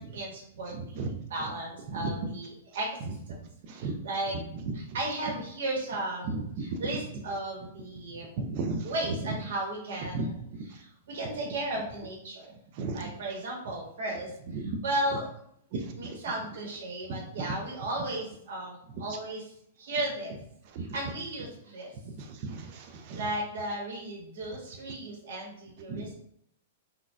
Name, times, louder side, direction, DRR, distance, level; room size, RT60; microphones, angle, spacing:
voice 1, 0.0-3.4 3.7-4.4 4.7-8.3 8.8-12.5 12.9-14.3 14.6-15.3 15.7-19.5 19.8-20.3 20.8-21.9 23.1-26.1, right 1 dB, 80° right, -2 dB, 1.2 m, -35 dB
voice 2, 8.4-8.8 10.1-10.3 12.8-13.0 15.7-15.8 20.8-20.9 22.4-23.2 25.9-26.1, right 3 dB, 40° right, 4 dB, 0.4 m, -33 dB
3.9 x 2.3 x 2.3 m, 0.70 s
supercardioid pair, 165°, 0 cm